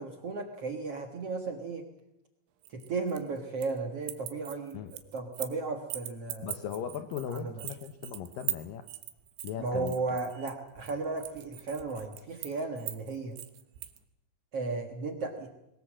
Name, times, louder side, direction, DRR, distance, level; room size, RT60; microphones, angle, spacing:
voice 1, 0.0-1.8 2.7-4.8 5.1-6.6 7.3-7.5 9.6-13.4 14.5-15.5, right 3 dB, 60° right, 4 dB, 1.5 m, -35 dB
sound 1, 2.6-3.8 4.0-5.6 5.9-14.0, right 14 dB, 85° right, 3.6 m, -40 dB
voice 2, 6.4-8.9 9.4-10.2, left 8 dB, 85° left, 9 dB, 1.9 m, -38 dB
22.0 x 20.0 x 7.6 m, 0.89 s
omnidirectional pair, 5.2 m